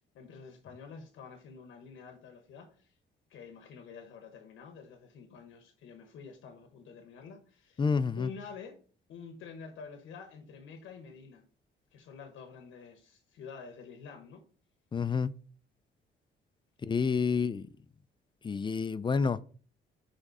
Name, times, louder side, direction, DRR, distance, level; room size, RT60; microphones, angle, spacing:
voice 1, 0.1-3.0 3.3-7.8 8.2-8.8 9.1-11.4 11.9-14.4, left 6 dB, 80° left, 1.0 m, -48 dB
voice 2, 7.8-8.3 14.9-15.3 16.8-17.7 18.4-19.4, left 5 dB, 25° left, 0.3 m, -29 dB
5.4 x 3.6 x 4.8 m
cardioid pair, 90°, 20 cm